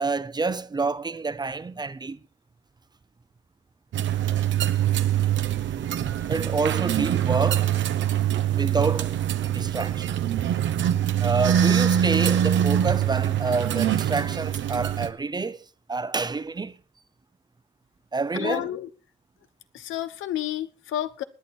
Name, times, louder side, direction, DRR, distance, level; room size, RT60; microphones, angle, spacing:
voice 1, 0.0-2.2 6.3-7.7 8.5-9.1 9.4-10.1 11.2-15.6 15.9-16.7 18.1-18.7, right 4 dB, 20° right, 0.6 m, -28 dB
sound 1, 3.9-15.1, right 10 dB, 70° right, 1.0 m, -24 dB
voice 2, 18.3-18.9 19.7-21.2, left 12 dB, 80° left, 1.0 m, -30 dB
20.0 x 9.1 x 4.3 m
cardioid pair, 90°, 20 cm